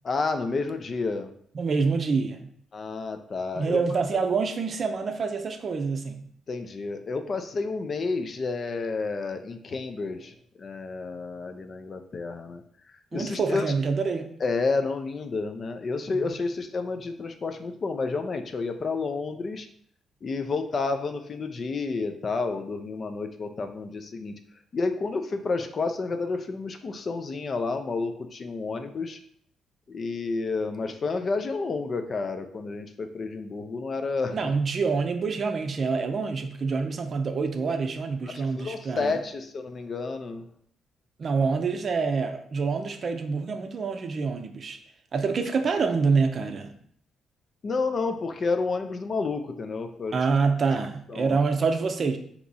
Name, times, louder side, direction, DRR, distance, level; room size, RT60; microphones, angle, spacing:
voice 1, 0.0-1.3 2.7-3.8 6.5-12.6 13.1-13.7 14.4-19.7 20.2-24.3 24.7-29.2 29.9-34.5 38.3-40.4 47.6-50.2 51.1-51.4, left 4 dB, 45° left, 7 dB, 0.4 m, -30 dB
voice 2, 1.5-2.5 3.5-6.3 13.1-14.3 16.1-16.4 34.3-39.1 41.2-44.8 45.1-46.7 50.1-52.2, right 4 dB, 45° right, 6 dB, 0.5 m, -26 dB
3.4 x 2.9 x 4.0 m, 0.64 s
cardioid pair, 90°, 0 cm